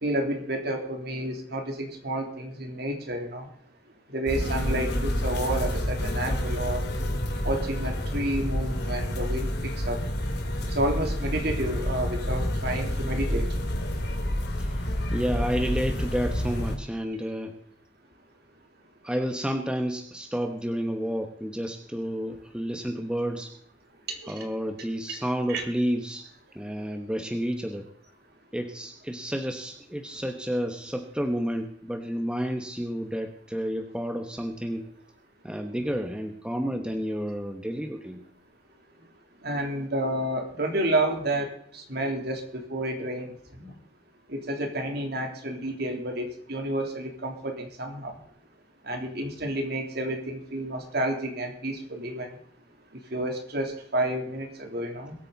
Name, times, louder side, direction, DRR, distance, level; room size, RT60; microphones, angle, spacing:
voice 1, 0.0-3.5 4.1-6.8 7.4-9.5 9.9-10.0 10.7-13.4 24.1-24.3 25.5-25.6 39.4-43.3 43.6-43.7 44.3-48.1 48.9-52.3 53.1-55.1, right 1 dB, 55° right, 3 dB, 3.2 m, -30 dB
sound 1, 4.3-16.8, equal, 55° left, 2.9 m, -29 dB
voice 2, 14.6-17.5 19.0-23.5 24.3-26.2 26.5-27.9 28.5-34.8 35.4-38.2, equal, 5° right, 5 dB, 1.0 m, -30 dB
22.5 x 9.0 x 4.0 m, 0.62 s
head